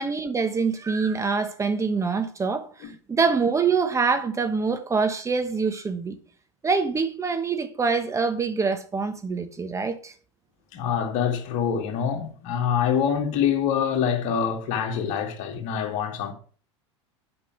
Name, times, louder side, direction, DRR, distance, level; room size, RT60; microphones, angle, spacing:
voice 1, 0.0-6.2 6.6-10.1, right 5 dB, 20° right, 1.2 m, -25 dB
voice 2, 10.7-16.3, left 8 dB, 55° left, 2.5 m, -25 dB
8.5 x 5.9 x 7.4 m
hypercardioid pair, 90°, 16 cm